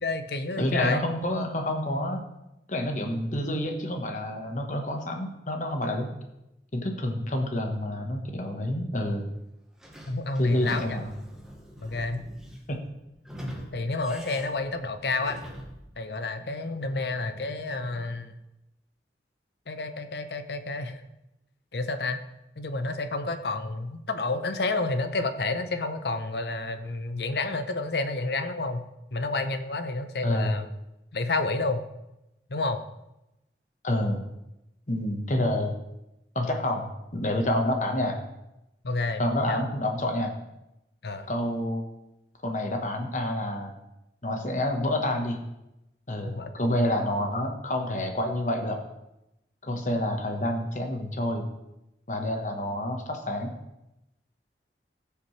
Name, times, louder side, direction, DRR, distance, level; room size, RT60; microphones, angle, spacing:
voice 1, 0.0-1.0 10.1-10.8 11.8-12.2 13.7-15.4 16.0-18.3 19.7-21.0 21.7-22.2 22.6-28.8 29.1-30.7 31.1-31.8 32.5-32.8 38.8-39.2 39.5-39.6 41.0-41.3 46.3-46.5, left 3 dB, 65° left, 9 dB, 0.8 m, -30 dB
voice 2, 0.6-2.2 2.7-6.1 6.7-9.3 10.4-11.1 12.7-12.8 30.2-30.6 33.8-34.2 34.9-35.8 36.3-38.2 39.2-40.3 41.3-41.8 42.4-43.7 44.2-45.4 46.1-48.8 49.6-51.5 52.1-53.5, left 1 dB, 45° left, 4 dB, 1.3 m, -28 dB
Sliding door / Squeak, 9.8-15.9, equal, 5° right, 1.2 m, -43 dB
15.5 x 6.9 x 3.3 m, 0.91 s
head